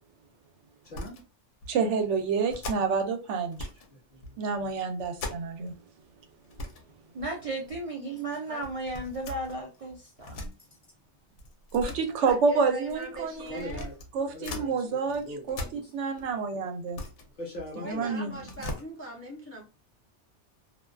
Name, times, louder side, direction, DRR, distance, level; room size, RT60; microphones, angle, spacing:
sound 1, 0.8-1.3 1.6-1.7 2.5-3.1 3.5-3.9 4.2-5.8 6.1-6.2 6.4-6.8 7.2-7.8 8.6-10.5 11.4-14.7 15.1-16.3 16.7-18.0 18.3-18.8, left 1 dB, 80° left, 0.9 m, -40 dB
voice 1, 0.8-1.2 3.9-4.7 13.4-13.9 14.3-15.9 17.4-18.5, left 1 dB, 45° left, 0.8 m, -42 dB
voice 2, 1.7-3.7 4.4-5.7 11.7-13.7 14.1-15.2 15.5-17.0 17.8-18.3, right 5 dB, 80° right, 0.9 m, -28 dB
voice 3, 7.1-10.5, right 2 dB, 50° right, 0.4 m, -35 dB
voice 4, 11.8-13.9 17.8-19.6, right 2 dB, 20° left, 0.4 m, -41 dB
2.4 x 2.2 x 2.3 m
omnidirectional pair, 1.2 m